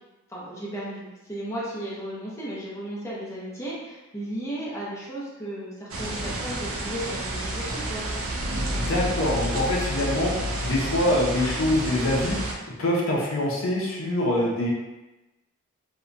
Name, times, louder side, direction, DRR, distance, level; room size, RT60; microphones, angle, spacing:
voice 1, 0.3-8.0, right 1 dB, 15° left, -7 dB, 0.6 m, -35 dB
sound 1, 5.9-12.5, right 1 dB, 75° right, 0.4 m, -30 dB
voice 2, 8.8-10.3 10.6-12.4 12.8-14.7, left 1 dB, 65° left, -3 dB, 0.6 m, -24 dB
2.8 x 2.1 x 2.5 m, 1.1 s
head